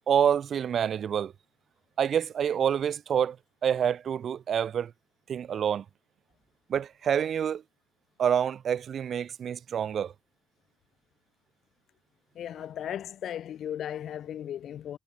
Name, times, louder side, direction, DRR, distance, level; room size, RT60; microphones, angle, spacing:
voice 1, 0.1-1.3 2.0-3.4 3.6-4.9 5.3-5.8 6.7-7.6 8.2-10.1, right 8 dB, 60° right, 0.7 m, -27 dB
voice 2, 12.3-15.0, left 10 dB, 70° left, 0.8 m, -36 dB
cardioid pair, 90°, 0 cm